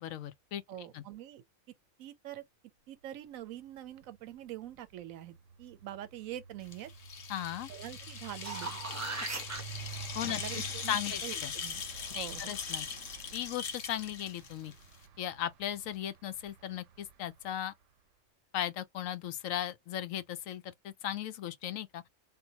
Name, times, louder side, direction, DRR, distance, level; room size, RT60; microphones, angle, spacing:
voice 1, 0.0-1.0 7.3-7.7 10.1-11.5 12.1-12.9 13.3-14.7 15.2-17.7 18.5-22.0, left 11 dB, 80° left, 1.0 m, -37 dB
voice 2, 0.7-1.4 2.0-2.4 2.9-6.9 7.7-8.7 10.4-11.8 12.1-12.5, right 12 dB, 90° right, 1.0 m, -44 dB
sound 1, 3.8-4.1 4.4-17.5, right 5 dB, 70° right, 0.9 m, -49 dB
sound 2, 6.6-15.1, left 6 dB, 60° left, 1.0 m, -41 dB
sound 3, 8.2-9.6 14.4-14.5, right 3 dB, 20° right, 0.5 m, -38 dB
3.7 x 2.2 x 2.8 m
omnidirectional pair, 1.4 m